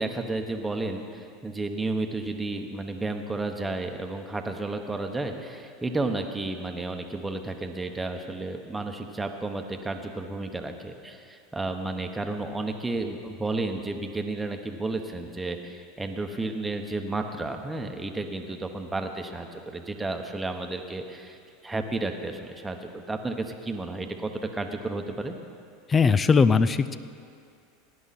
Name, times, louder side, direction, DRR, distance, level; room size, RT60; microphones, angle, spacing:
voice 1, 0.0-21.4 21.6-25.4, right 2 dB, 10° right, 4 dB, 1.2 m, -32 dB
voice 2, 25.9-27.0, left 5 dB, 25° left, 14 dB, 0.5 m, -20 dB
17.5 x 10.5 x 4.3 m, 2.4 s
hypercardioid pair, 105°, 0 cm